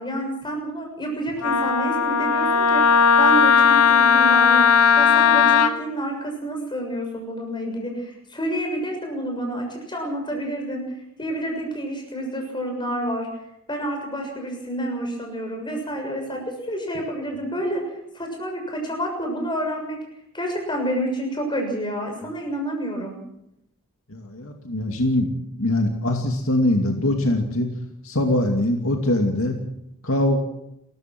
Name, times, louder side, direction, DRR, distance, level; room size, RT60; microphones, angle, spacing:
voice 1, 0.0-4.6 5.0-10.8 11.2-13.3 13.7-17.8 18.1-20.0 20.3-23.2, right 1 dB, 20° left, 2 dB, 6.8 m, -29 dB
Wind instrument woodwind instrument, 1.4-5.7, left 7 dB, 85° left, 1.8 m, -16 dB
voice 2, 24.1-25.3 25.6-27.7 28.0-29.5 30.0-30.4, left 1 dB, 65° left, 3 dB, 2.5 m, -22 dB
30.0 x 15.0 x 6.1 m, 0.82 s
head